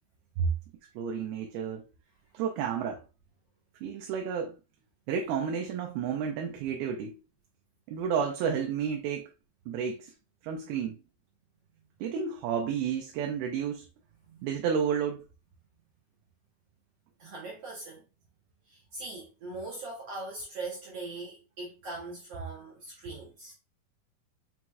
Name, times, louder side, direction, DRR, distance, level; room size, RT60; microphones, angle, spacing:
voice 1, 1.0-1.9 2.3-3.0 3.8-4.6 5.1-7.2 7.9-9.3 9.7-10.1 10.4-11.0 12.0-13.9 14.4-15.3, right 7 dB, 85° right, 2.6 m, -31 dB
voice 2, 17.2-18.0 18.7-23.5, right 2 dB, 65° right, 1.5 m, -41 dB
6.1 x 3.0 x 2.3 m
omnidirectional pair, 4.4 m